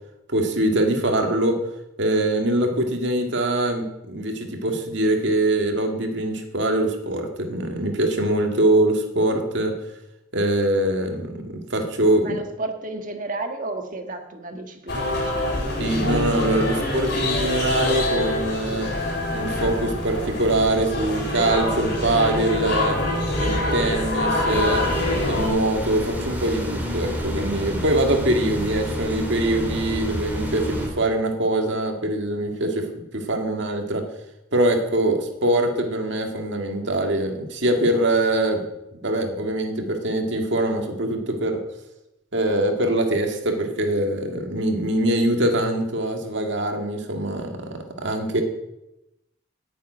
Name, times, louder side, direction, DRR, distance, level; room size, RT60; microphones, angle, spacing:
voice 1, 0.3-1.6 2.0-9.7 10.3-12.4 15.8-18.9 19.3-22.9 23.4-24.8 25.3-34.0 34.5-38.6 39.0-41.5 42.3-47.5 48.0-48.4, right 1 dB, 65° right, 3 dB, 2.0 m, -23 dB
voice 2, 12.2-15.8, right 2 dB, 40° right, 5 dB, 1.5 m, -33 dB
sound 1, 14.9-25.5, left 1 dB, 55° left, 3.7 m, -25 dB
sound 2, 24.5-30.9, left 1 dB, 10° right, 2.8 m, -29 dB
9.5 x 7.4 x 9.0 m, 0.90 s
head